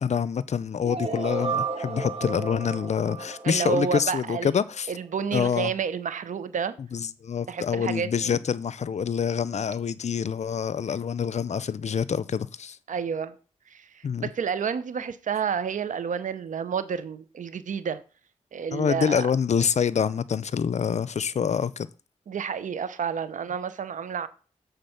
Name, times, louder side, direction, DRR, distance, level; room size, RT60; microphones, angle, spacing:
voice 1, 0.0-4.9 5.3-5.7 6.9-12.8 14.0-14.3 18.7-21.9, left 7 dB, 60° left, 0.5 m, -26 dB
sound 1, 0.8-4.8, right 4 dB, 50° right, 1.8 m, -33 dB
voice 2, 3.4-4.5 4.9-6.7 7.5-8.4 12.9-13.3 13.7-18.0 18.5-19.3 22.3-24.3, right 6 dB, 75° right, 0.7 m, -30 dB
7.8 x 4.0 x 5.8 m
cardioid pair, 50°, 13 cm